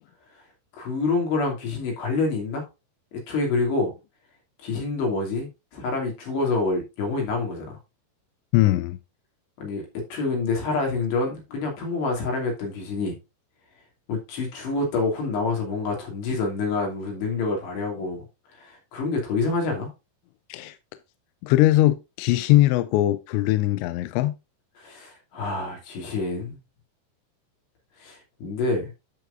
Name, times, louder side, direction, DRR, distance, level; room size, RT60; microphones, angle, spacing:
voice 1, 0.7-2.6 3.1-3.9 4.6-7.8 9.6-13.2 14.1-18.2 18.5-19.9 24.8-26.6 28.0-28.9, left 3 dB, 65° left, 4.8 m, -27 dB
voice 2, 8.5-9.0 20.5-20.8 21.4-24.4, left 15 dB, 85° left, 2.6 m, -20 dB
11.0 x 6.7 x 2.5 m
omnidirectional pair, 5.4 m